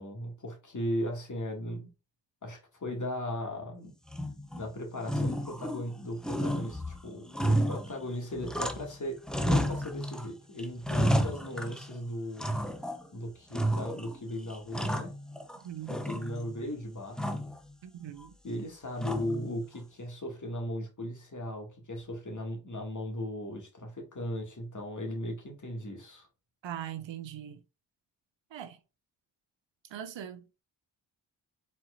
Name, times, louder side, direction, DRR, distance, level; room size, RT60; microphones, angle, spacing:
voice 1, 0.0-1.9 2.4-3.9 4.6-12.8 13.1-15.1 15.9-17.4 18.4-26.3, left 1 dB, 40° left, 2.1 m, -37 dB
sound 1, 4.1-4.7 5.0-6.0 6.2-9.0 9.3-10.3 10.6-12.0 12.4-13.1 13.5-14.2 14.5-15.6 15.9-16.6 17.2-17.6 19.0-19.5, equal, ahead, 0.7 m, -31 dB
voice 2, 15.6-16.0 17.8-18.3 26.6-27.6 28.5-28.8 29.9-30.4, right 10 dB, 70° right, 0.8 m, -40 dB
4.4 x 4.2 x 2.5 m
cardioid pair, 45°, 47 cm